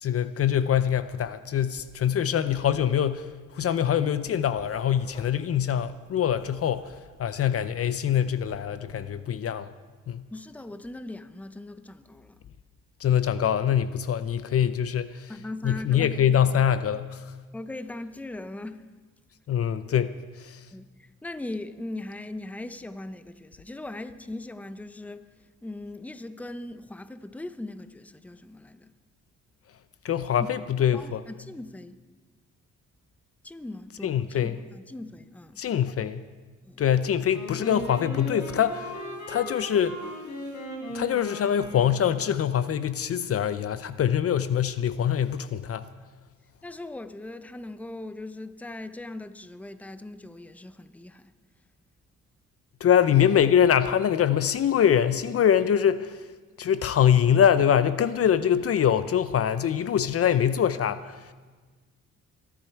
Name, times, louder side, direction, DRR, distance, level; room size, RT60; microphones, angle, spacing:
voice 1, 0.0-3.3 3.5-6.9 7.2-9.7 10.1-10.2 13.0-15.3 15.6-17.3 19.5-20.6 30.0-31.2 34.0-34.6 35.6-36.3 36.8-38.9 39.3-40.0 40.9-45.8 52.8-56.2 56.6-61.3, left 9 dB, 50° left, 0.6 m, -24 dB
Writing, 0.7-1.4 1.6-7.5 7.8-9.2, left 1 dB, 20° left, 2.8 m, -51 dB
voice 2, 10.3-12.4 15.3-16.2 17.5-18.9 20.7-25.2 25.6-28.9 30.4-30.5 30.9-32.0 33.4-35.6 36.6-36.8 46.6-51.3, left 2 dB, 5° left, 0.7 m, -39 dB
Wind instrument woodwind instrument, 37.3-42.5, left 1 dB, 65° left, 5.2 m, -38 dB
23.5 x 11.0 x 4.6 m
cardioid pair, 90°, 30 cm